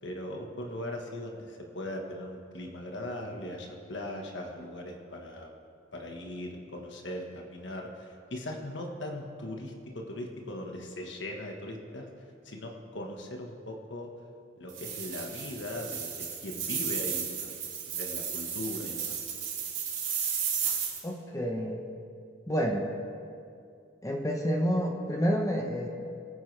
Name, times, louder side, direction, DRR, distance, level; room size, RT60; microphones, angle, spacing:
voice 1, 0.0-5.5 5.9-12.1 12.4-14.1 14.6-17.5 17.9-19.1, left 1 dB, 75° left, 1 dB, 1.5 m, -39 dB
sound 1, 14.7-21.0, right 7 dB, 50° right, 3.4 m, -34 dB
voice 2, 21.0-21.8 22.5-22.9 24.0-25.9, equal, 20° left, 2 dB, 1.0 m, -29 dB
23.0 x 9.4 x 3.4 m, 2.4 s
head